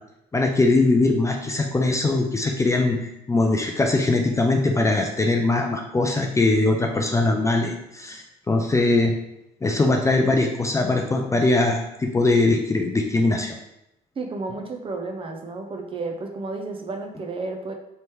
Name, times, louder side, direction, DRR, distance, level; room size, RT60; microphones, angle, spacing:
voice 1, 0.3-9.1 9.6-13.5, left 2 dB, 15° left, 3 dB, 0.4 m, -21 dB
voice 2, 14.2-17.7, right 3 dB, 30° right, 3 dB, 0.7 m, -32 dB
3.3 x 3.0 x 4.5 m, 0.83 s
cardioid pair, 110°, 17 cm